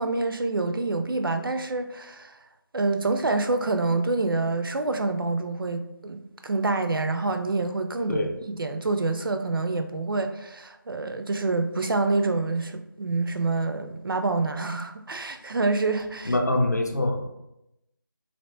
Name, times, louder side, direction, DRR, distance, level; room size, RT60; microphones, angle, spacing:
voice 1, 0.0-2.4 2.7-16.3, right 3 dB, 75° right, 7 dB, 0.4 m, -27 dB
voice 2, 16.2-17.3, left 1 dB, 50° left, 2 dB, 0.6 m, -24 dB
2.8 x 2.5 x 3.2 m, 0.87 s
figure-of-eight pair, 170°, 12 cm